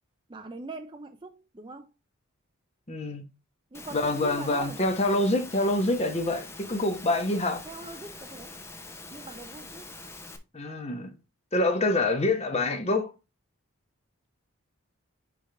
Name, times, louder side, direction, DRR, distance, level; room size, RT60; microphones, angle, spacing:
voice 1, 0.3-1.9 3.7-4.8 7.7-8.6 9.1-9.9, right 3 dB, 20° right, 0.5 m, -42 dB
voice 2, 2.9-3.2 3.9-7.6 10.5-11.1 11.5-13.1, left 2 dB, 30° left, 1.1 m, -26 dB
Engine / Mechanisms, 3.7-10.4, left 3 dB, 10° left, 0.8 m, -44 dB
9.8 x 3.4 x 3.4 m
head